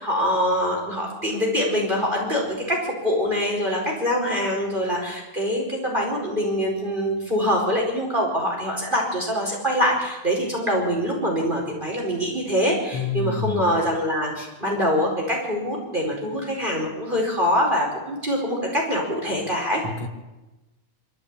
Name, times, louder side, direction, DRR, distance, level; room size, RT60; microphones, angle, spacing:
voice 1, 0.0-19.8, equal, 15° right, -1 dB, 4.8 m, -24 dB
voice 2, 12.9-13.7 19.8-20.1, left 5 dB, 45° left, 5 dB, 2.4 m, -27 dB
25.0 x 14.0 x 8.7 m, 1.1 s
omnidirectional pair, 3.4 m